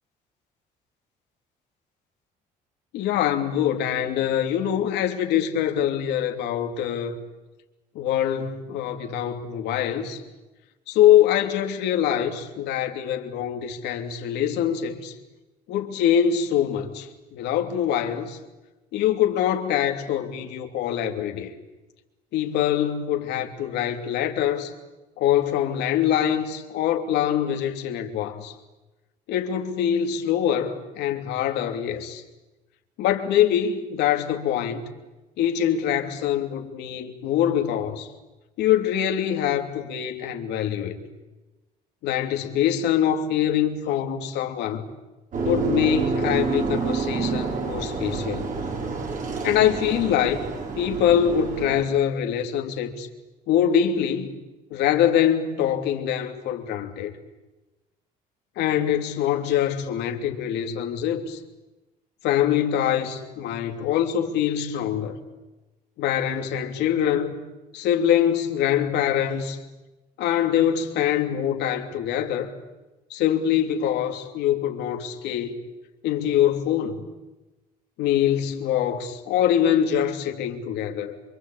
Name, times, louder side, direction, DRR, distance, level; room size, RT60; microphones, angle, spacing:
voice 1, 2.9-7.2 7.9-10.2 10.9-15.1 15.7-18.4 18.9-21.5 22.3-24.7 25.2-28.5 29.3-32.2 33.0-34.9 35.4-38.1 38.6-40.9 42.0-44.8 45.4-48.5 49.4-50.4 50.8-53.1 53.5-54.4 54.7-57.1 58.6-61.4 62.2-65.2 66.0-67.3 67.7-69.6 70.2-72.5 73.1-75.5 76.0-77.0 78.0-81.2, left 10 dB, 85° left, 3.1 m, -24 dB
sound 1, 45.3-51.8, right 4 dB, 50° right, 5.5 m, -28 dB
27.5 x 24.5 x 8.6 m
cardioid pair, 110°, 17 cm